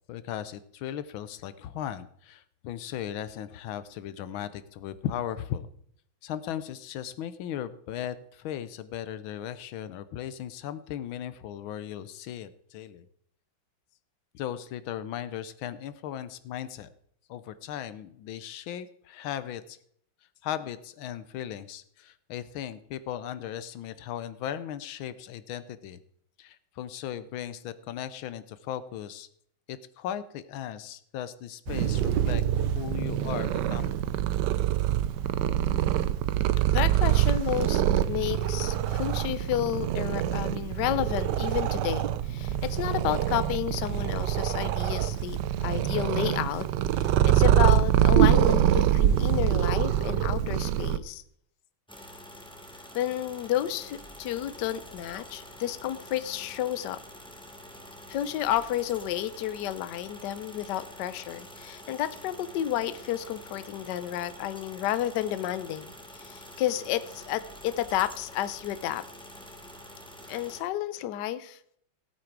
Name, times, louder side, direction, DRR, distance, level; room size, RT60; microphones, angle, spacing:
voice 1, 0.1-5.7 6.2-13.1 14.3-16.9 17.3-19.8 20.4-26.0 26.4-29.3 29.7-33.9, left 10 dB, 85° left, 14 dB, 1.5 m, -37 dB
Purr, 31.7-51.0, right 11 dB, 70° right, 1.1 m, -25 dB
voice 2, 36.7-46.7 46.9-51.2 52.9-57.0 58.1-69.0 70.3-71.6, left 12 dB, 65° left, 13 dB, 1.2 m, -31 dB
sound 1, 51.9-70.6, equal, 5° left, 0.8 m, -47 dB
16.5 x 8.5 x 4.6 m, 0.66 s
omnidirectional pair, 2.2 m